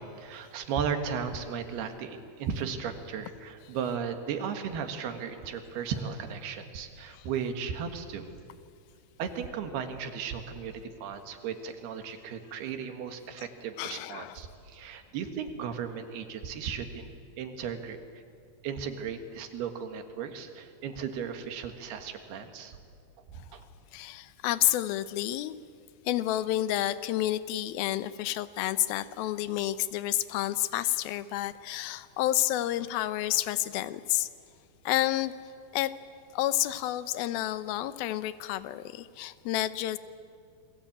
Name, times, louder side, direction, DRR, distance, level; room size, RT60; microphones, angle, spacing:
voice 1, 0.0-8.3 9.2-17.1 17.4-18.0 18.6-22.8 23.3-23.6, right 7 dB, 80° right, 7 dB, 3.7 m, -36 dB
voice 2, 13.8-14.4 23.9-25.5 26.1-34.3 34.9-35.3 35.7-35.9 36.3-40.0, left 14 dB, 80° left, 14 dB, 2.5 m, -30 dB
28.5 x 22.0 x 8.8 m, 2.3 s
omnidirectional pair, 4.5 m